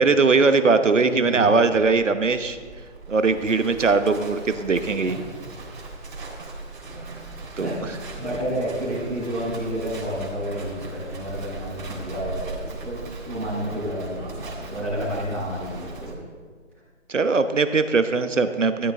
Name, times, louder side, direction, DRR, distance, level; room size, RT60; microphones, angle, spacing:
voice 1, 0.0-2.6 3.1-5.2 7.6-7.7 17.1-18.9, right 4 dB, 80° right, 10 dB, 1.1 m, -20 dB
voice 2, 0.6-1.6 5.1-5.2 7.6-16.2, equal, ahead, -22 dB, 0.7 m, -30 dB
Livestock farm animals working animals, 1.7-16.1, right 2 dB, 45° right, 3.5 m, -38 dB
13.5 x 13.0 x 3.8 m, 1.5 s
figure-of-eight pair, 155°, 37 cm